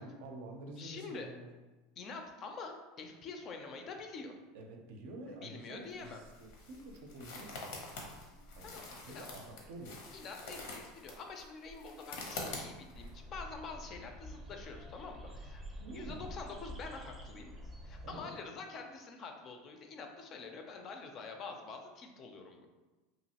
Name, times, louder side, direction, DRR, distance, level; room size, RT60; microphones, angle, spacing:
voice 1, 0.0-1.5 4.5-8.2 8.6-10.0 15.8-16.3 18.0-18.3, right 1 dB, 75° right, 2 dB, 0.5 m, -48 dB
voice 2, 0.8-1.3 2.0-4.4 5.3-6.2 8.6-9.3 10.1-15.6 15.9-17.5 17.8-22.7, left 4 dB, 35° left, 4 dB, 0.4 m, -46 dB
sound 1, 5.9-13.1, left 2 dB, 80° left, 0.7 m, -46 dB
sound 2, 12.9-18.1, equal, 15° right, 0.5 m, -48 dB
2.9 x 2.4 x 2.8 m, 1.2 s
supercardioid pair, 135°, 0 cm